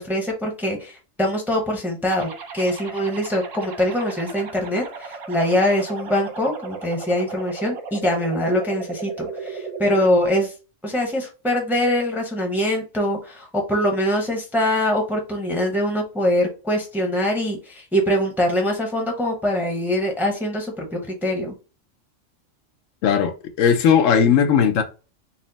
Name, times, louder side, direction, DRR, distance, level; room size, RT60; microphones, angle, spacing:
voice 1, 0.0-10.5 10.8-21.5, left 1 dB, ahead, 0.7 m, -23 dB
sound 1, 2.1-10.1, right 5 dB, 75° right, 1.0 m, -36 dB
voice 2, 23.0-24.8, left 7 dB, 85° left, 1.0 m, -17 dB
4.3 x 2.0 x 3.9 m
omnidirectional pair, 1.3 m